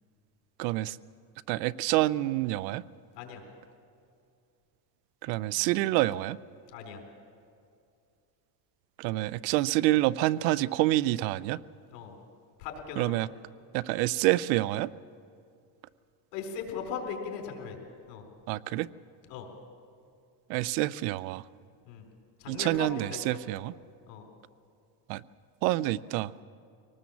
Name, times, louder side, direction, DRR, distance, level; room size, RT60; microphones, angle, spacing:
voice 1, 0.6-1.0 1.5-2.8 5.2-6.4 9.0-11.6 13.0-13.3 13.7-14.9 18.5-18.9 20.5-21.4 22.5-23.7 25.1-25.2 25.6-26.3, right 17 dB, 85° right, 20 dB, 0.7 m, -27 dB
voice 2, 6.7-7.0 11.9-12.1 12.6-13.3 16.3-17.8 18.1-18.2 19.3-19.5 21.9-22.0 22.4-23.4 24.1-24.3, left 6 dB, 85° left, 3 dB, 4.2 m, -38 dB
24.5 x 19.0 x 7.2 m, 2.4 s
supercardioid pair, 110°, 49 cm